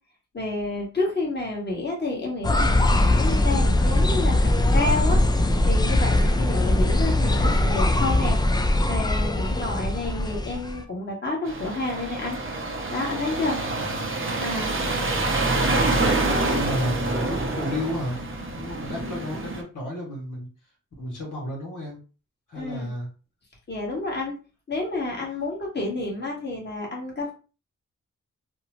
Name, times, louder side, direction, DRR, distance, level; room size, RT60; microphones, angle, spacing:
voice 1, 0.3-5.2 5.6-8.4 8.9-12.4 12.9-13.6 14.4-14.7 22.5-22.9 23.7-24.3 24.7-27.3, left 2 dB, 35° left, -2 dB, 1.1 m, -29 dB
sound 1, 2.4-10.8, left 1 dB, 15° left, 0.3 m, -21 dB
sound 2, 11.5-19.6, right 2 dB, 45° right, 0.6 m, -26 dB
voice 2, 13.7-14.1 14.8-18.2 18.5-20.5 21.0-22.0 22.5-23.1, equal, 85° left, -2 dB, 1.2 m, -33 dB
2.7 x 2.0 x 2.9 m, 0.35 s
cardioid pair, 80°, 30 cm